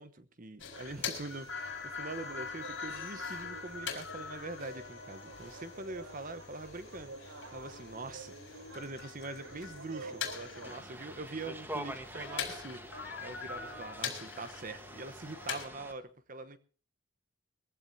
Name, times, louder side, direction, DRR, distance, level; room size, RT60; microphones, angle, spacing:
voice 1, 0.0-16.6, right 2 dB, 40° right, 12 dB, 1.0 m, -44 dB
sound 1, 0.6-15.6, left 6 dB, 60° left, 4.5 m, -43 dB
sound 2, 0.7-10.8, right 2 dB, 80° right, 3.9 m, -50 dB
sound 3, 10.6-15.9, right 1 dB, 10° right, 1.3 m, -45 dB
22.0 x 15.5 x 2.8 m, 0.36 s
head